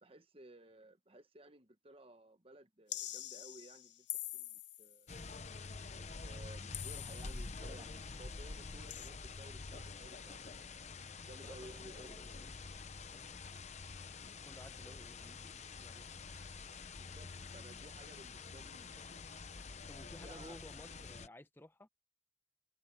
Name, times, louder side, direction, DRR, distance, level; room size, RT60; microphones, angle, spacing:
voice 1, 0.0-4.1 4.3-5.1 5.9-10.7 11.2-12.3 14.8-15.0 16.9-19.3 20.0-20.6, right 2 dB, 30° right, 1.3 m, -57 dB
sound 1, 2.9-5.0 6.7-7.6 8.9-9.1, left 14 dB, 70° left, 0.9 m, -45 dB
sound 2, 5.1-21.3, left 4 dB, 35° left, 0.8 m, -47 dB
voice 2, 11.4-12.7 13.1-13.5 14.4-16.1 19.9-21.9, left 1 dB, 10° left, 1.1 m, -57 dB
head